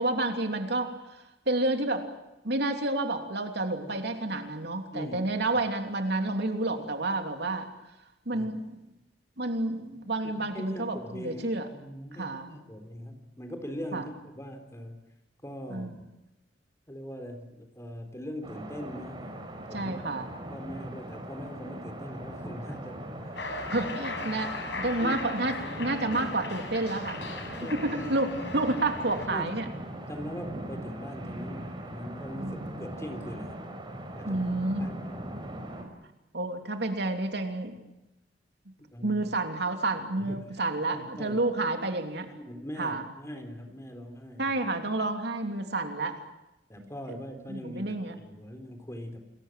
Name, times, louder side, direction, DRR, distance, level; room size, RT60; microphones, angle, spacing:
voice 1, 0.0-2.1 2.4-7.7 8.2-8.8 9.4-11.7 12.2-12.6 13.9-14.0 15.7-15.9 19.7-20.3 23.7-24.5 24.8-27.2 27.7-29.7 32.3-32.6 34.2-34.9 36.3-37.8 39.0-42.3 42.8-43.0 44.4-46.2 47.5-48.1, right 2 dB, 65° right, 5 dB, 3.1 m, -30 dB
voice 2, 10.2-15.0 15.4-16.1 16.9-20.2 20.5-23.9 25.0-25.5 27.4-27.8 29.3-29.5 30.1-33.6 34.1-34.5 34.8-35.5 38.9-39.2 40.2-40.5 40.8-41.4 42.4-44.6 46.7-49.2, equal, 15° left, 6 dB, 3.9 m, -41 dB
sound 1, 18.4-35.8, right 1 dB, 30° right, 5.4 m, -40 dB
Cheering, 23.3-29.3, left 2 dB, 75° left, 6.8 m, -37 dB
29.0 x 21.5 x 7.6 m, 0.96 s
head